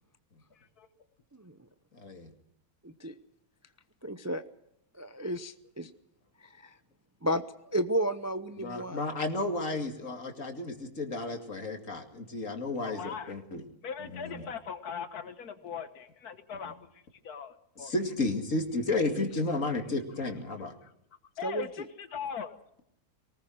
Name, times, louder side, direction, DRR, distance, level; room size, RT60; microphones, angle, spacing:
voice 1, 0.5-0.9 12.8-13.3 13.8-17.9 20.8-20.9 21.4-22.5, left 7 dB, 85° left, 10 dB, 1.8 m, -40 dB
voice 2, 1.9-2.3 8.6-13.6 14.1-14.4 17.8-20.7, left 2 dB, 60° left, 5 dB, 2.8 m, -32 dB
voice 3, 2.8-3.2 4.0-4.4 5.0-5.9 6.4-6.8 7.2-7.4 7.7-9.0 21.4-21.7, right 1 dB, 20° right, 10 dB, 0.5 m, -32 dB
22.5 x 19.5 x 6.3 m, 0.76 s
omnidirectional pair, 1.6 m